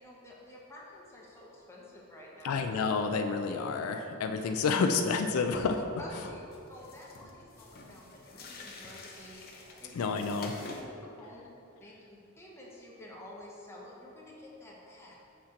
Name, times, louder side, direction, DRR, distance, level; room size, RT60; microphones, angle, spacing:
voice 1, 0.0-2.5 6.0-6.4 6.7-10.0 11.2-11.4 11.8-15.2, left 1 dB, 10° left, -4 dB, 0.9 m, -50 dB
voice 2, 2.4-5.9 9.9-10.5, left 5 dB, 85° left, 6 dB, 0.4 m, -29 dB
sound 1, 4.5-4.8 5.2-5.3 5.5-5.9 6.2-10.8, left 2 dB, 45° left, 0.7 m, -47 dB
5.9 x 4.3 x 3.7 m, 2.7 s
head